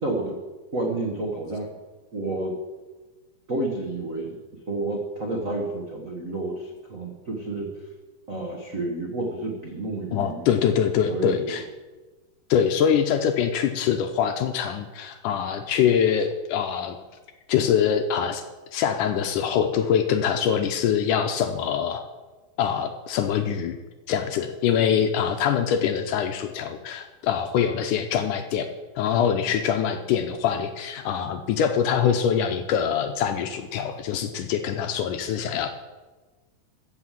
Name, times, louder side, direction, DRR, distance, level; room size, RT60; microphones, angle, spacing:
voice 1, 0.0-0.4 0.7-1.8 2.1-2.5 3.5-4.4 4.7-7.7 8.3-10.5 11.0-11.6, right 2 dB, 80° right, -1 dB, 0.7 m, -30 dB
voice 2, 10.1-11.6 12.5-17.0 17.5-18.4 18.7-22.0 22.6-23.8 24.1-28.7 29.0-35.7, left 8 dB, 75° left, 7 dB, 1.9 m, -24 dB
14.5 x 5.7 x 7.4 m, 1.3 s
omnidirectional pair, 4.1 m